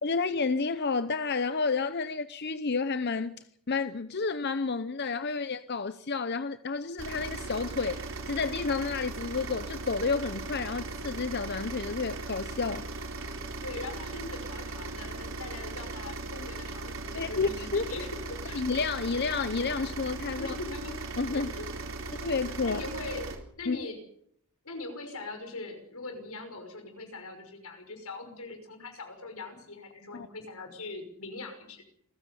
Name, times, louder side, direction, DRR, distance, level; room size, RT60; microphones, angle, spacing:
voice 1, 0.0-12.8 17.1-17.9 18.5-20.6 21.2-21.5 22.2-22.8 23.7-23.8 30.1-30.3, left 4 dB, 50° left, 0.8 m, -30 dB
sound 1, 7.0-23.4, right 3 dB, 65° right, 4.1 m, -38 dB
voice 2, 13.6-18.6 20.4-21.0 21.3-21.7 22.0-22.1 22.6-24.0 24.6-31.8, left 3 dB, 85° left, 5.8 m, -41 dB
27.5 x 15.5 x 7.0 m
head